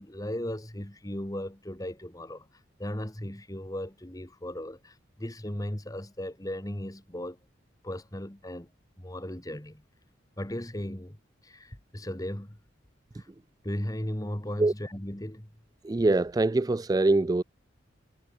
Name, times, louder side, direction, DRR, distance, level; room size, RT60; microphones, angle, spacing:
voice 1, 0.0-2.5 2.8-7.4 7.8-8.7 9.0-9.8 10.4-11.2 11.4-12.6 13.1-13.3 13.6-15.5, left 1 dB, 20° left, 1.7 m, -36 dB
voice 2, 15.8-17.4, right 2 dB, 20° right, 0.3 m, -23 dB
head